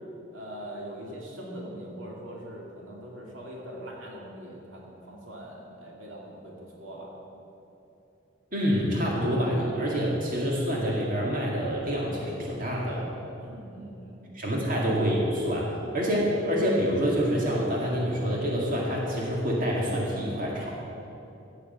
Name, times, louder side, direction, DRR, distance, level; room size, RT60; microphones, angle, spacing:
voice 1, 0.3-7.2 13.4-14.7, right 1 dB, 80° right, -2 dB, 2.4 m, -42 dB
voice 2, 8.5-13.1 14.3-20.7, equal, 45° right, -3 dB, 2.0 m, -27 dB
15.0 x 6.5 x 8.0 m, 2.9 s
head